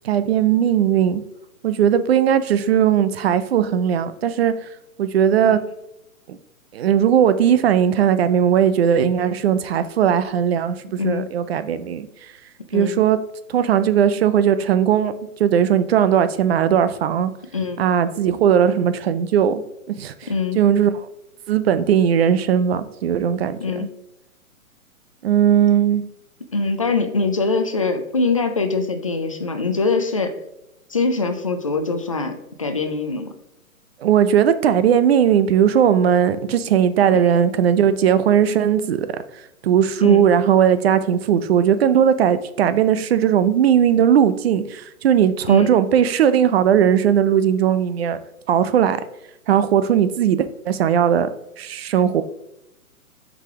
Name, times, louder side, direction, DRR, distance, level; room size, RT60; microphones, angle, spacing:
voice 1, 0.0-1.2 1.6-4.5 5.0-5.6 6.3-6.4 6.7-12.1 12.7-13.2 13.5-15.1 15.4-17.3 17.8-19.6 19.9-20.3 20.6-20.9 21.5-23.9 25.2-26.0 34.0-39.1 39.6-48.2 48.5-49.0 49.5-51.3 51.6-52.2, right 9 dB, 45° right, 0.6 m, -18 dB
voice 2, 11.0-11.3 12.7-13.0 17.5-17.8 20.3-20.6 23.6-23.9 26.5-30.4 30.9-33.3 37.2-37.3 40.0-40.2 45.5-45.7, left 4 dB, 25° left, 0.3 m, -23 dB
6.5 x 5.0 x 3.6 m
hypercardioid pair, 145°, 43 cm